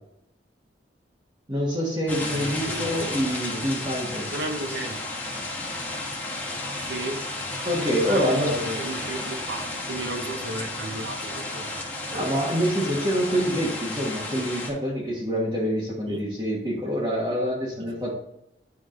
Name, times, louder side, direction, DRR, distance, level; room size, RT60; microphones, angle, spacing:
voice 1, 1.5-4.4 7.6-8.7 12.1-18.1, equal, 25° right, -5 dB, 1.5 m, -26 dB
sound 1, 2.1-14.7, left 2 dB, 10° left, 1.6 m, -32 dB
voice 2, 2.3-3.1 3.5-3.7 4.3-5.0 6.8-7.2 8.0-11.9 16.1-16.3, right 2 dB, 90° right, 5 dB, 1.0 m, -33 dB
10.0 x 3.8 x 3.8 m, 0.81 s
head